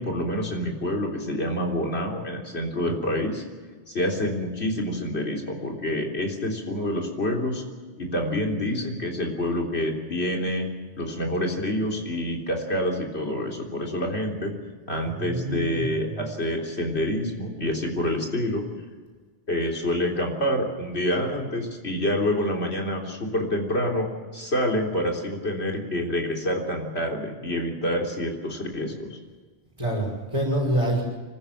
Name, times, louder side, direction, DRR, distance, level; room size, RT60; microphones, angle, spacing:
voice 1, 0.0-3.4 3.9-7.6 8.0-10.7 11.0-14.5 14.9-18.6 19.5-24.1 24.3-29.2, left 1 dB, 70° left, 0 dB, 3.9 m, -27 dB
voice 2, 15.0-16.3 29.8-31.0, right 1 dB, 30° right, -6 dB, 5.5 m, -27 dB
25.0 x 15.5 x 7.3 m, 1.5 s
omnidirectional pair, 1.1 m